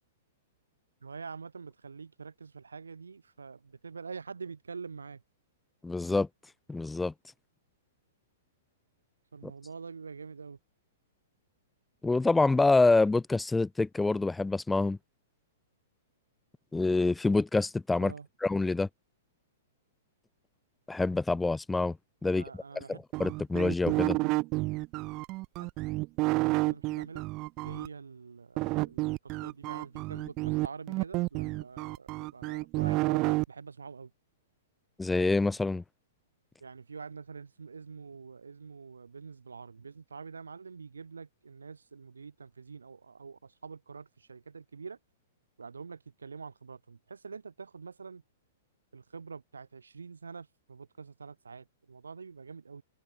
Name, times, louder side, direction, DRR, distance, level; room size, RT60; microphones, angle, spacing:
voice 1, 1.0-5.2 9.3-10.6 18.0-18.3 22.2-23.0 24.2-24.4 25.6-25.7 26.3-27.3 27.6-34.1 36.6-45.0 45.6-48.2 48.9-52.8, right 5 dB, 70° right, 6.3 m, -45 dB
voice 2, 5.8-6.3 6.7-7.1 9.4-9.5 12.0-15.0 16.7-18.1 18.4-18.9 20.9-22.0 22.2-22.4 22.9-24.2 35.0-35.8, left 3 dB, 5° left, 1.4 m, -26 dB
sound 1, 23.1-27.9 28.6-33.4, right 22 dB, 35° right, 0.3 m, -30 dB
figure-of-eight pair, 110°, 0 cm